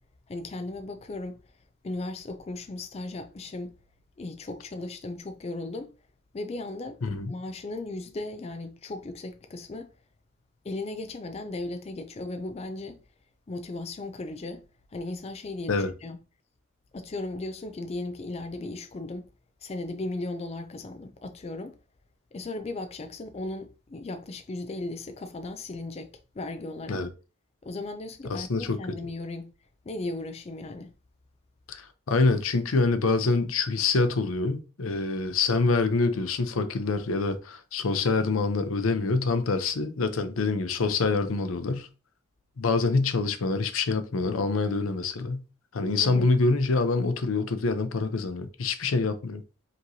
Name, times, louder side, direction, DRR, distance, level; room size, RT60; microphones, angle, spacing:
voice 1, 0.3-1.4 1.8-3.7 4.2-5.9 6.3-7.0 7.3-9.9 10.6-13.0 13.5-14.6 14.9-16.2 16.9-19.3 19.6-21.8 22.3-27.0 27.6-29.5 29.8-30.9 46.0-46.3, left 2 dB, 30° left, 0.4 m, -36 dB
voice 2, 7.0-7.3 15.7-15.9 26.9-27.1 28.3-28.8 31.7-41.9 42.6-45.4 45.7-49.4, left 3 dB, 90° left, 0.6 m, -26 dB
5.1 x 3.0 x 2.7 m
head